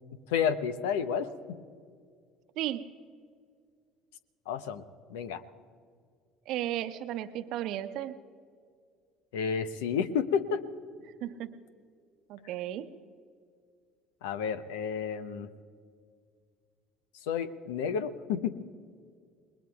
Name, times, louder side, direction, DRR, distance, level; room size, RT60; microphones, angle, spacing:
voice 1, 0.3-1.6 4.5-4.8 5.1-5.4 9.3-10.6 14.2-15.5 17.2-18.5, left 7 dB, 80° left, 12 dB, 0.7 m, -31 dB
voice 2, 2.6-2.9 6.5-8.2 11.2-11.6 12.3-12.9, right 12 dB, 65° right, 10 dB, 0.8 m, -34 dB
28.5 x 20.5 x 2.4 m, 2.1 s
hypercardioid pair, 65°, 0 cm